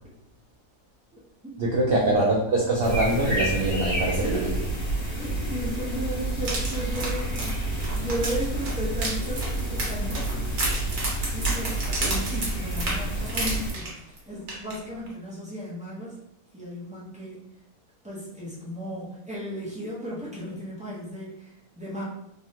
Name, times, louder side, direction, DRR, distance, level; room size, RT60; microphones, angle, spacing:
voice 1, 1.6-4.6 12.0-12.1, right 1 dB, 80° right, -2 dB, 0.5 m, -24 dB
sound 1, 2.8-13.7, right 1 dB, 65° left, 1.5 m, -29 dB
voice 2, 4.2-4.7 5.1-10.5 11.3-16.2 16.5-17.4 18.0-22.0, equal, 10° right, -7 dB, 0.3 m, -35 dB
sound 2, 6.4-14.2 14.5-14.7 15.1-15.2, right 2 dB, 55° right, 1.1 m, -32 dB
3.3 x 2.1 x 2.7 m, 0.79 s
omnidirectional pair, 1.5 m